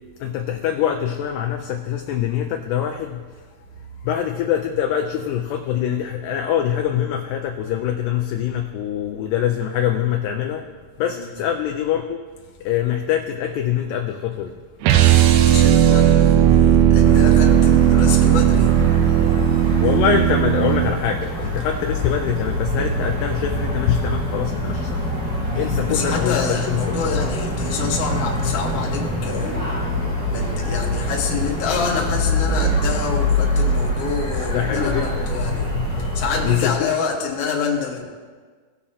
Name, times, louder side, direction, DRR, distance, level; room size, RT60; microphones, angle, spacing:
voice 1, 0.2-3.2 4.0-10.6 11.0-12.2 12.6-14.6 19.8-27.0 34.5-36.1 36.4-36.9, left 9 dB, 80° left, 4 dB, 2.0 m, -24 dB
sound 1, 14.8-20.9, right 11 dB, 80° right, 2.4 m, -15 dB
voice 2, 15.3-20.0 25.5-38.0, left 5 dB, 55° left, -1 dB, 1.8 m, -27 dB
sound 2, 17.0-36.5, left 1 dB, 10° right, 1.3 m, -25 dB
17.5 x 7.1 x 2.8 m, 1.5 s
omnidirectional pair, 4.3 m